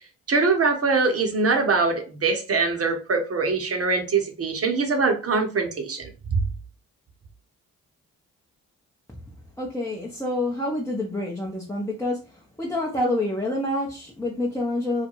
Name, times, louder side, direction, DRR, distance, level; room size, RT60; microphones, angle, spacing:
voice 1, 0.3-6.0 6.3-6.4, right 4 dB, 40° right, 4 dB, 0.9 m, -23 dB
voice 2, 9.6-12.2 12.6-15.1, left 1 dB, 10° left, -4 dB, 0.7 m, -27 dB
2.4 x 2.1 x 3.0 m, 0.34 s
hypercardioid pair, 40°, 36 cm